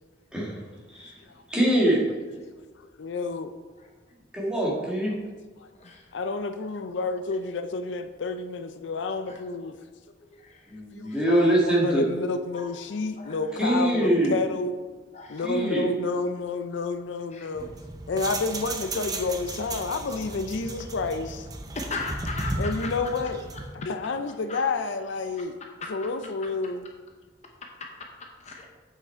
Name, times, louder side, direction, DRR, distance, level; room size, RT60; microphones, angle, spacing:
voice 1, 0.3-0.6 0.9-1.1 1.5-2.1 4.3-5.1 10.7-12.0 13.6-14.4 15.4-15.9, right 1 dB, 5° right, -5 dB, 1.8 m, -23 dB
voice 2, 0.9-1.2 3.8-3.9 5.8-6.1 9.3-9.4 10.2-10.8 11.1-11.2 12.5-12.6 13.2-13.3 15.1-15.7 17.3-17.5 19.0-19.1 21.7-22.9 24.5-24.6 28.0-28.1 28.4-28.7, left 3 dB, 35° left, 1 dB, 0.8 m, -38 dB
voice 3, 2.8-3.5 5.6-5.7 6.1-9.7 10.9-14.8 15.3-17.7 18.1-21.5 22.6-23.5 23.7-25.5 25.9-26.9, left 3 dB, 75° left, 9 dB, 0.5 m, -30 dB
sound 1, 17.6-23.7, right 2 dB, 20° right, 0.6 m, -35 dB
8.0 x 5.9 x 4.4 m, 1.4 s
head